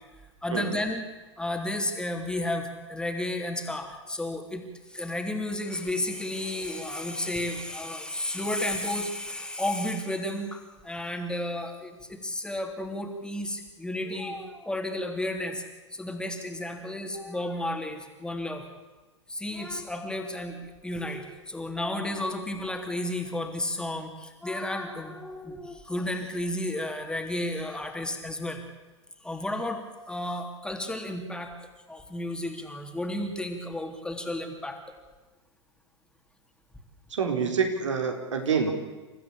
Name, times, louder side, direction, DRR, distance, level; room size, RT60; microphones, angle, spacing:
voice 1, 0.4-1.0 1.4-4.6 4.9-15.6 15.9-18.6 19.3-28.6 29.2-31.5 31.9-35.0, left 1 dB, 5° left, 4 dB, 3.2 m, -32 dB
voice 2, 37.1-38.8, right 6 dB, 75° right, 4 dB, 4.0 m, -27 dB
29.5 x 14.5 x 8.6 m, 1.2 s
figure-of-eight pair, 100°, 16 cm